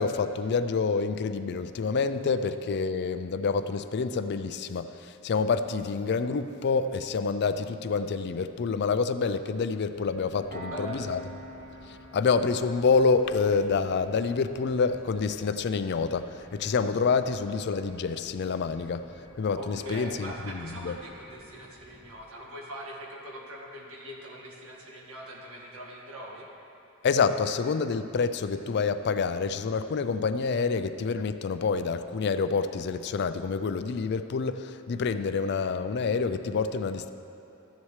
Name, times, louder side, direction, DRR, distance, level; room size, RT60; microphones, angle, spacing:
voice 1, 0.0-11.2 11.9-19.1 19.4-20.9 27.0-37.1, left 5 dB, 55° left, 10 dB, 0.4 m, -27 dB
sound 1, 9.9-22.1, equal, 15° right, 1.7 m, -54 dB
Piano, 10.5-21.6, right 1 dB, 40° right, 1.5 m, -50 dB
voice 2, 10.5-11.1 19.6-26.5, equal, 80° right, -2 dB, 1.8 m, -42 dB
14.0 x 10.0 x 3.2 m, 2.8 s
head